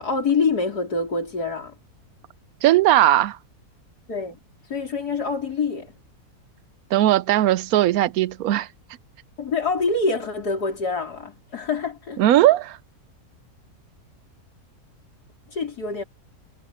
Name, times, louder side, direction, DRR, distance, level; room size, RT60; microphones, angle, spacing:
voice 1, 0.0-1.8 4.1-4.4 4.7-5.9 9.4-12.2 15.5-16.0, left 4 dB, 75° left, 4.5 m, -25 dB
voice 2, 2.6-3.4 6.9-8.7 12.2-12.8, right 13 dB, 70° right, 1.0 m, -18 dB
omnidirectional pair, 1.7 m